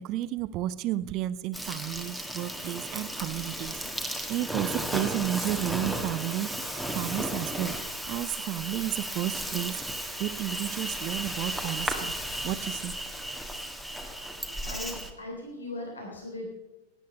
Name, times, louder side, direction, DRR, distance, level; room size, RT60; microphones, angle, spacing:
voice 1, 0.0-3.8 4.3-9.8 10.2-12.1 12.4-12.9, right 14 dB, 40° right, 16 dB, 0.7 m, -32 dB
Insect, 1.5-15.1, right 1 dB, ahead, 1.6 m, -34 dB
voice 2, 14.4-16.5, left 2 dB, 75° left, 1 dB, 3.4 m, -39 dB
17.0 x 10.5 x 5.3 m, 1.0 s
figure-of-eight pair, 90°, 0 cm